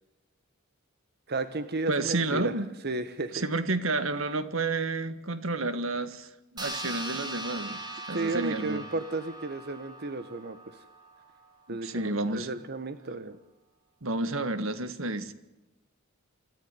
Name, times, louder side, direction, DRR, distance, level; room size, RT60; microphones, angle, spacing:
voice 1, 1.3-2.5 2.8-3.4 8.1-10.6 11.7-13.4, right 3 dB, 50° right, 10 dB, 1.4 m, -33 dB
voice 2, 1.9-2.7 3.3-7.8 8.1-8.9 11.7-12.5 14.0-15.3, right 2 dB, 75° right, 12 dB, 1.8 m, -30 dB
sound 1, 6.6-11.4, right 2 dB, 20° right, 4.4 m, -40 dB
26.5 x 14.5 x 9.7 m, 0.96 s
head